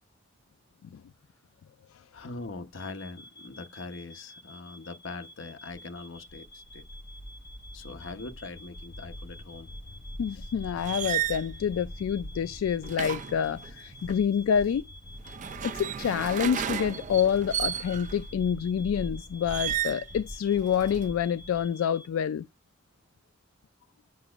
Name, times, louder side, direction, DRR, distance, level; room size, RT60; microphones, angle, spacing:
voice 1, 2.1-6.8 7.7-9.7, left 3 dB, 70° left, 0.9 m, -42 dB
sound 1, 2.7-22.1, left 1 dB, 20° left, 1.0 m, -51 dB
sound 2, 6.3-21.7, equal, 45° left, 4.9 m, -44 dB
voice 2, 10.2-14.8 15.6-22.5, left 8 dB, 85° left, 0.3 m, -27 dB
sound 3, 10.8-11.5 12.8-14.2 15.2-18.2 19.5-20.1 20.5-21.1, right 10 dB, 40° right, 0.4 m, -33 dB
8.2 x 5.9 x 2.4 m
head